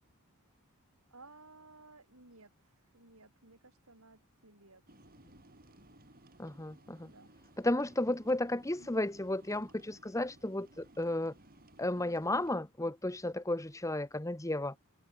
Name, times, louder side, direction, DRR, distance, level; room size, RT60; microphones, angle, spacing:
voice 1, 1.1-4.8 7.0-7.3 8.8-9.1 11.9-12.2, right 2 dB, 70° right, 6.8 m, -58 dB
sound 1, 4.9-12.6, right 1 dB, 40° right, 6.4 m, -60 dB
voice 2, 6.4-7.1 7.6-11.3 11.8-14.7, left 1 dB, 15° left, 1.3 m, -33 dB
head